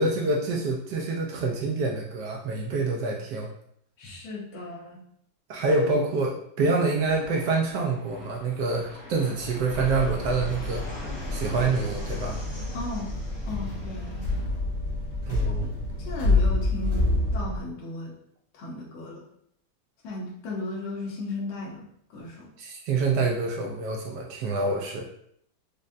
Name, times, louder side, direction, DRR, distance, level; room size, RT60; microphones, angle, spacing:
voice 1, 0.0-3.5 5.5-10.8 11.3-12.4 15.3-15.7 22.6-25.1, right 3 dB, 75° right, 0 dB, 1.0 m, -26 dB
voice 2, 4.0-5.0 12.7-13.1 13.5-14.3 15.4-15.7 16.0-18.1 18.5-19.2 20.0-21.8 22.1-22.5, left 2 dB, 90° left, -3 dB, 1.8 m, -36 dB
Fixed-wing aircraft airplane, 6.8-14.4, left 1 dB, 50° left, 1.3 m, -43 dB
sound 1, 9.4-17.4, left 3 dB, 65° left, 1.9 m, -28 dB
sound 2, 9.7-17.6, left 1 dB, 30° left, 0.7 m, -35 dB
5.2 x 2.2 x 2.5 m, 0.68 s
omnidirectional pair, 2.3 m